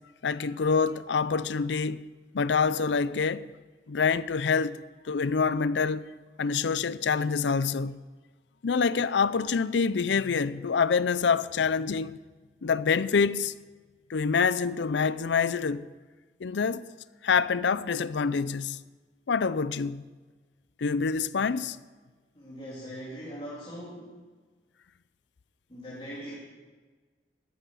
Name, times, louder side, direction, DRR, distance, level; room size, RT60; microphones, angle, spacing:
voice 1, 0.2-2.0 2.3-3.5 3.9-4.8 5.1-6.1 6.4-8.0 8.6-12.2 12.6-13.5 14.1-15.8 16.4-16.8 17.2-18.8 19.3-20.0 20.8-21.8, left 5 dB, 80° left, 0.5 m, -26 dB
voice 2, 22.3-24.3 25.7-26.4, equal, 30° left, 2.7 m, -41 dB
12.5 x 11.5 x 6.9 m
head